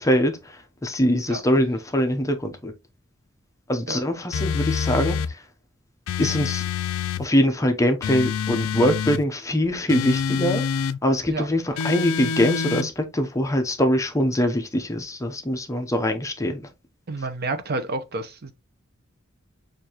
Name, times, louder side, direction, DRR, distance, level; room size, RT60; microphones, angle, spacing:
voice 1, 0.0-2.7 3.7-5.2 6.2-6.6 7.2-10.6 11.0-16.6, equal, 15° left, 0.6 m, -23 dB
sound 1, 4.3-5.3 6.1-7.3 8.0-9.2 9.9-11.0 11.8-12.9, left 6 dB, 80° left, 0.4 m, -26 dB
voice 2, 17.1-18.5, right 3 dB, 50° right, 0.7 m, -29 dB
6.6 x 2.6 x 2.9 m
head